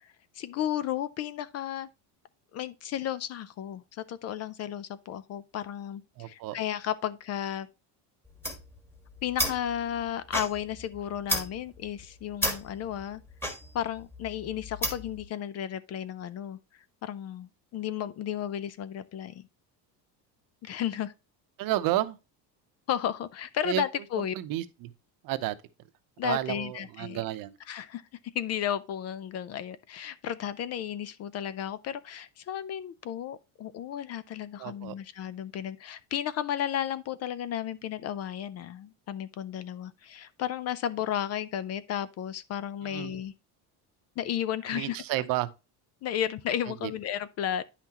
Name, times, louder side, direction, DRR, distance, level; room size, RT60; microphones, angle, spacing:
voice 1, 0.0-1.9 2.5-7.7 9.2-13.2 13.7-16.6 17.0-19.5 20.6-21.1 22.9-24.3 26.2-27.2 27.7-28.0 28.3-43.3 44.2-45.0 46.0-47.6, left 10 dB, 40° left, 0.5 m, -33 dB
voice 2, 6.2-6.6 21.6-22.2 23.6-23.8 24.2-24.9 25.2-25.5 26.2-27.5 34.6-34.9 42.8-43.2 44.7-45.5 46.8-46.9, right 15 dB, 55° right, 0.8 m, -31 dB
sound 1, 8.3-15.2, equal, 5° left, 1.5 m, -34 dB
9.9 x 5.8 x 2.9 m
cardioid pair, 155°, 41 cm